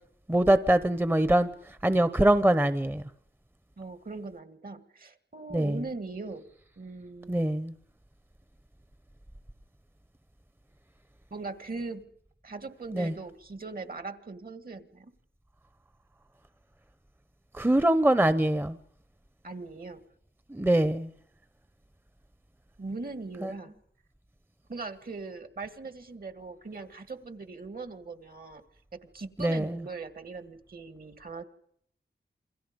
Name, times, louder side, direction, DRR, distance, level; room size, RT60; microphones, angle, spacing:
voice 1, 0.3-1.5 1.8-3.0 5.5-5.8 7.3-7.7 12.9-13.1 17.5-18.8 20.5-21.1 23.4-23.5 29.4-29.8, right 1 dB, 10° right, 0.9 m, -23 dB
voice 2, 3.8-6.5 6.8-7.4 11.3-12.1 12.4-15.1 19.4-20.0 22.8-23.7 24.7-28.6 28.9-31.4, right 3 dB, 55° right, 2.0 m, -40 dB
28.5 x 22.5 x 5.3 m
wide cardioid pair, 85°, 18 cm